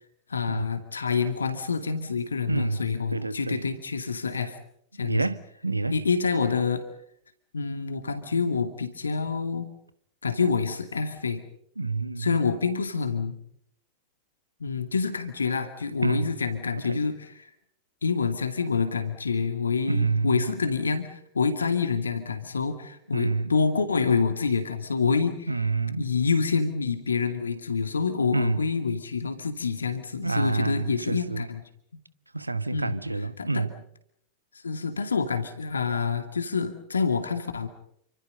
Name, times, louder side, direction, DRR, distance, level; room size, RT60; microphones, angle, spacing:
voice 1, 0.3-4.6 5.0-5.2 5.9-6.8 7.5-9.7 10.2-11.4 12.2-13.4 14.6-17.5 18.0-25.5 26.0-31.6 32.7-33.0 33.4-33.7 34.6-37.7, left 5 dB, 75° left, 2.3 m, -27 dB
voice 2, 2.5-3.7 5.0-6.0 11.8-12.4 16.0-16.3 16.8-17.1 19.9-20.5 23.1-23.5 25.5-26.0 28.3-28.7 30.2-31.5 32.3-33.7, right 3 dB, 85° right, 1.1 m, -28 dB
29.0 x 25.5 x 5.4 m
figure-of-eight pair, 90°, 0 cm